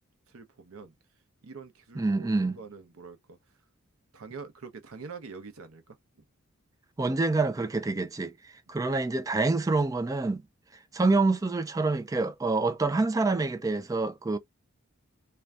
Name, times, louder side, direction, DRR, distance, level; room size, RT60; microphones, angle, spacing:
voice 1, 0.3-1.0 1.4-3.4 4.1-6.0, right 5 dB, 70° right, 0.7 m, -45 dB
voice 2, 2.0-2.6 7.0-8.3 8.7-10.4 10.9-14.4, right 3 dB, 15° right, 0.3 m, -26 dB
2.5 x 2.2 x 3.2 m
head